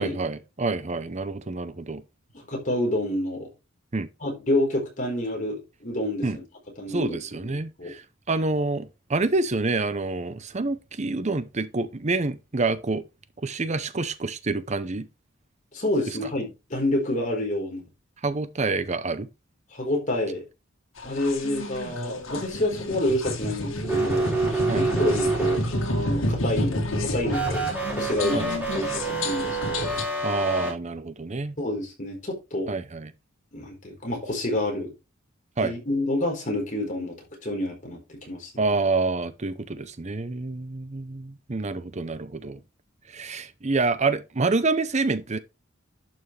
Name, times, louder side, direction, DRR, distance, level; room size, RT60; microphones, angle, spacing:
voice 1, 0.0-2.0 3.9-4.1 6.2-6.4 6.9-13.0 13.4-15.1 16.1-16.2 18.2-19.3 24.7-24.9 28.3-28.5 30.2-31.6 32.7-33.1 35.6-35.7 38.6-42.6 43.1-45.4, right 3 dB, 35° right, 0.7 m, -27 dB
voice 2, 2.5-3.5 4.2-6.4 6.8-7.2 7.4-7.9 15.7-17.8 19.7-20.4 21.0-24.3 24.7-25.6 25.9-29.9 31.6-32.7 33.5-34.9 35.6-37.2 37.4-38.5, left 1 dB, 40° left, 4.2 m, -28 dB
sound 1, 21.0-30.0, left 1 dB, 90° left, 2.1 m, -30 dB
sound 2, 23.8-26.0 27.3-30.7, right 2 dB, 5° right, 4.3 m, -27 dB
11.5 x 6.1 x 3.3 m
head